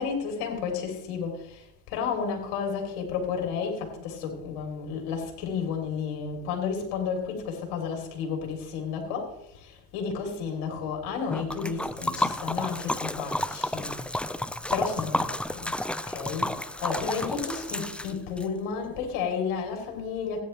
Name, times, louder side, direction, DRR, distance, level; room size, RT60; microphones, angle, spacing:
voice 1, 0.0-14.2 14.7-15.7 16.1-20.4, left 6 dB, 65° left, 3 dB, 3.7 m, -32 dB
Liquid, 11.3-18.5, left 1 dB, 5° left, 0.5 m, -31 dB
16.0 x 10.0 x 3.3 m, 0.79 s
hypercardioid pair, 80°, 45 cm